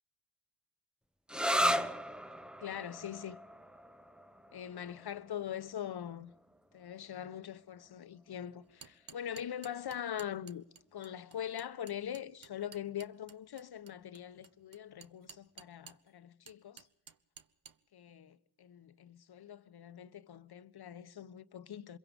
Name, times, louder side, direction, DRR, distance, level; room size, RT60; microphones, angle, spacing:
sound 1, 1.3-8.7, equal, ahead, 0.9 m, -37 dB
voice 1, 1.5-1.9 2.6-3.4 4.5-6.3 6.7-10.6 10.9-16.9 17.9-22.0, left 10 dB, 70° left, 1.1 m, -42 dB
sound 2, 8.6-16.1 16.5-17.8, right 7 dB, 55° right, 1.1 m, -54 dB
26.0 x 22.5 x 5.2 m
cardioid pair, 85°, 40 cm